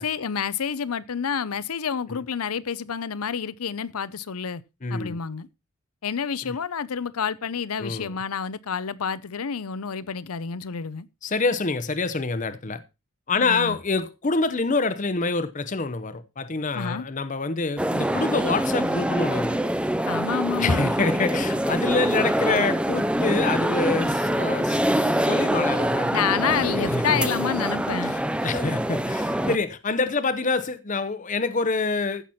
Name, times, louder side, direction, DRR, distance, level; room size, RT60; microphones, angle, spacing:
voice 1, 0.0-4.6 4.9-5.5 6.0-11.1 13.3-13.8 16.7-17.1 20.1-20.9 26.1-28.2, left 7 dB, 85° left, 0.6 m, -29 dB
voice 2, 4.8-5.2 6.4-6.6 7.8-8.1 11.2-12.8 13.3-19.6 20.6-26.3 26.7-27.2 28.0-32.2, left 3 dB, 35° left, 0.7 m, -26 dB
sound 1, 17.8-29.6, right 1 dB, 5° right, 0.5 m, -24 dB
15.0 x 6.0 x 4.2 m
head